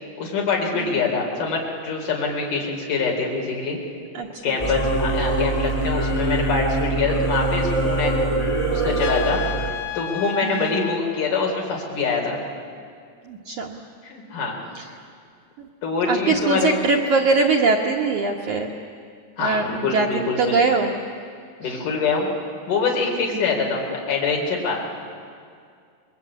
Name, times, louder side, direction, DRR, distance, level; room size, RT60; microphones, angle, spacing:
voice 1, 0.2-3.8 4.4-8.2 8.7-12.4 14.0-14.5 15.8-16.8 19.4-20.6 21.6-22.3 22.7-24.8, left 4 dB, 45° left, -1 dB, 4.9 m, -24 dB
voice 2, 0.7-1.1 4.1-4.9 10.4-10.7 13.2-13.8 14.7-14.9 15.6-15.7 16.1-18.7 19.4-20.9 21.6-21.9 23.3-23.7, right 4 dB, 75° right, 0 dB, 1.7 m, -23 dB
Singing / Musical instrument, 4.6-9.7, right 2 dB, 15° left, 1.2 m, -23 dB
Trumpet, 9.0-11.0, left 12 dB, 75° left, 2.7 m, -31 dB
26.5 x 21.5 x 8.5 m, 2.2 s
omnidirectional pair, 5.2 m